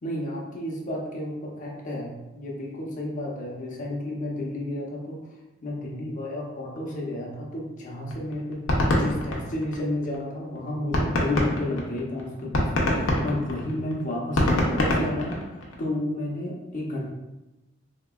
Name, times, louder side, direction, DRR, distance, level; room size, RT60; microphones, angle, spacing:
voice 1, 0.0-17.1, left 1 dB, 40° left, -2 dB, 0.7 m, -32 dB
sound 1, 8.1-10.2 10.6-10.7 10.9-15.8, left 1 dB, 85° left, 0.7 m, -24 dB
3.7 x 2.9 x 2.3 m, 1.0 s
head